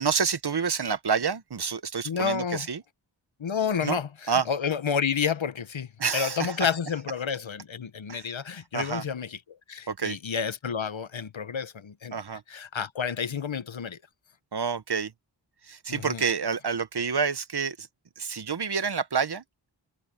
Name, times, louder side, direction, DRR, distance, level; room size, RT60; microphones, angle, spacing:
voice 1, 0.0-2.8 3.8-4.0 4.3-4.5 6.0-6.6 8.1-8.3 8.7-9.0 9.9-10.2 12.1-12.4 14.5-15.1 15.6-17.9 18.2-19.4, right 6 dB, 55° right, 0.9 m, -28 dB
voice 2, 2.0-2.7 3.4-12.2 12.5-14.0 15.9-16.2, left 6 dB, 80° left, 1.0 m, -30 dB
wide cardioid pair, 50°, 46 cm